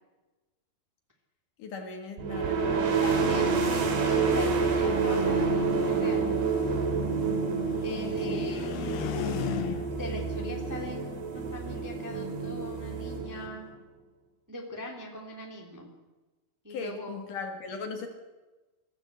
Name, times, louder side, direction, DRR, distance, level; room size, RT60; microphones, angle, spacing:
voice 1, 1.6-3.0 8.2-8.4 16.7-18.1, left 4 dB, 60° left, 4 dB, 3.0 m, -38 dB
sound 1, 2.2-13.7, right 4 dB, 70° right, 4.4 m, -28 dB
voice 2, 3.0-6.3 7.8-9.2 9.9-13.7 14.5-15.9 16.6-17.2, left 2 dB, 5° right, 1 dB, 2.1 m, -41 dB
sound 2, 6.2-10.1, left 10 dB, 75° left, 3.2 m, -38 dB
22.5 x 14.5 x 8.0 m, 1.2 s
omnidirectional pair, 4.6 m